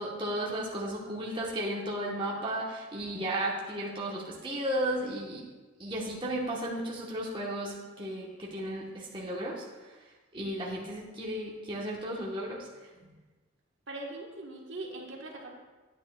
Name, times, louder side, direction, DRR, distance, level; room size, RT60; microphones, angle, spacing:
voice 1, 0.0-5.4 5.8-9.6 10.3-12.7 13.0-13.1, right 1 dB, 25° right, -5 dB, 1.1 m, -34 dB
voice 2, 13.9-15.5, right 2 dB, 65° right, -1 dB, 1.3 m, -41 dB
9.9 x 9.3 x 2.3 m, 1.2 s
head